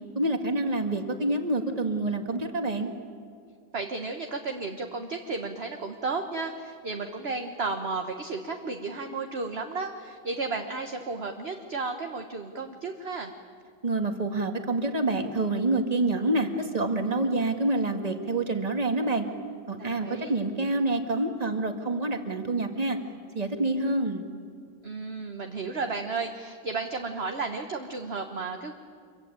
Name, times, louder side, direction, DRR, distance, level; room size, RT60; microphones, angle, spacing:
voice 1, 0.2-2.9 13.8-19.3 19.7-23.0 23.3-24.2, right 2 dB, 20° right, 6 dB, 1.9 m, -27 dB
voice 2, 3.7-13.3 19.8-20.4 24.8-28.7, right 4 dB, 35° right, 5 dB, 1.3 m, -33 dB
26.5 x 23.0 x 9.2 m, 2.2 s
omnidirectional pair, 2.1 m